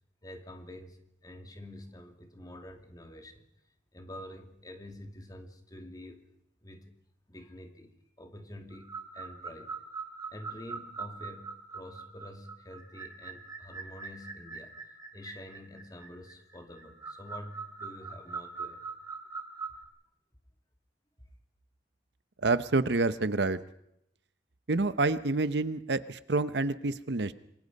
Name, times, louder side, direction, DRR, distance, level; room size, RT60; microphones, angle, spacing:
voice 1, 0.2-3.4 3.9-6.2 6.6-6.9 7.3-9.7 10.3-14.7 15.1-18.9, left 1 dB, 20° left, 5 dB, 2.6 m, -47 dB
sound 1, 8.7-19.8, right 5 dB, 20° right, 3.1 m, -43 dB
voice 2, 22.4-23.6 24.7-27.3, right 3 dB, 65° right, 14 dB, 0.9 m, -28 dB
27.5 x 21.5 x 5.4 m, 0.77 s
head